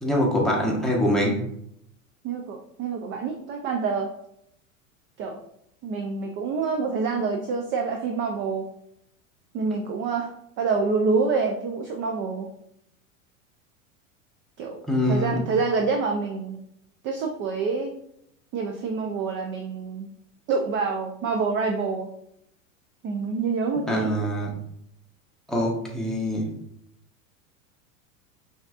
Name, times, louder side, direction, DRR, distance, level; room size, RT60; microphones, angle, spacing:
voice 1, 0.0-1.4 14.9-15.4 23.9-24.5 25.5-26.5, equal, ahead, -3 dB, 0.9 m, -24 dB
voice 2, 2.2-4.1 5.2-5.4 5.8-8.7 9.5-12.5 14.6-16.6 17.0-17.9 18.5-20.1 20.5-22.1 23.0-24.1, right 4 dB, 30° right, 3 dB, 0.4 m, -27 dB
5.7 x 2.8 x 2.4 m, 0.74 s
hypercardioid pair, 95°, 42 cm